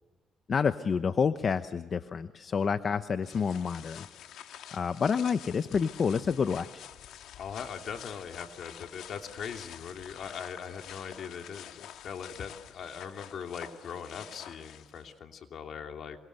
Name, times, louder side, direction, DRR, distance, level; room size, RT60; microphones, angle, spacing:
voice 1, 0.5-4.1 4.7-6.8, left 6 dB, 45° left, 11 dB, 0.9 m, -28 dB
sound 1, 3.2-15.2, left 10 dB, 85° left, 1.6 m, -48 dB
voice 2, 7.4-16.2, left 7 dB, 65° left, 4 dB, 3.0 m, -40 dB
27.5 x 25.0 x 8.0 m, 1.3 s
cardioid pair, 90°, 0 cm